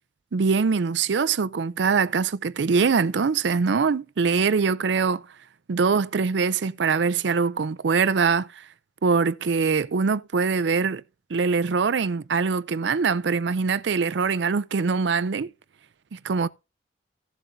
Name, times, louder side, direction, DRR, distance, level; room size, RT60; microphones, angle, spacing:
voice 1, 0.3-5.2 5.7-8.6 9.0-11.0 11.3-15.5 16.1-16.5, right 5 dB, 70° right, 0.5 m, -23 dB
16.5 x 7.2 x 2.7 m
head